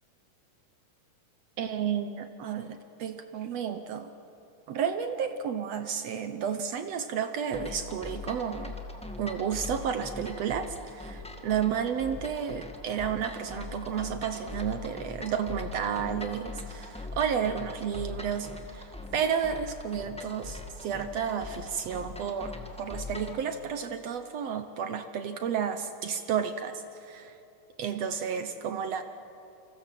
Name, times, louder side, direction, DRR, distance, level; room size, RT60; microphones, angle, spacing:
voice 1, 1.6-4.1 4.7-8.8 9.2-27.3 27.8-29.0, right 7 dB, 70° right, 9 dB, 1.7 m, -32 dB
sound 1, 7.5-23.4, left 2 dB, 5° left, 0.8 m, -41 dB
28.5 x 26.5 x 7.6 m, 2.8 s
omnidirectional pair, 3.8 m